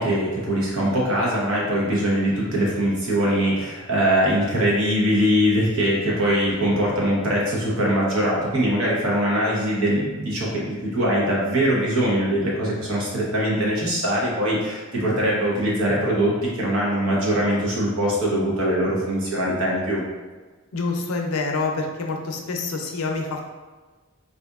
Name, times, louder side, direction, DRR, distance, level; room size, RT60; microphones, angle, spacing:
voice 1, 0.0-20.0, equal, 75° right, -5 dB, 1.0 m, -22 dB
voice 2, 20.7-23.5, left 3 dB, 80° left, 2 dB, 0.5 m, -27 dB
4.1 x 2.5 x 2.4 m, 1.3 s
head